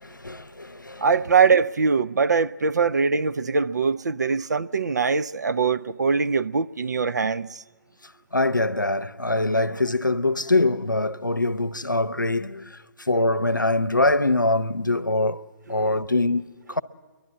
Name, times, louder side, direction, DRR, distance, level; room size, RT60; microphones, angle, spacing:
voice 1, 0.0-1.0 8.3-16.8, left 2 dB, 90° left, 0.7 m, -24 dB
voice 2, 1.0-7.6 15.8-15.9, right 5 dB, 65° right, 0.5 m, -22 dB
29.5 x 11.5 x 8.6 m
figure-of-eight pair, 135°, 10 cm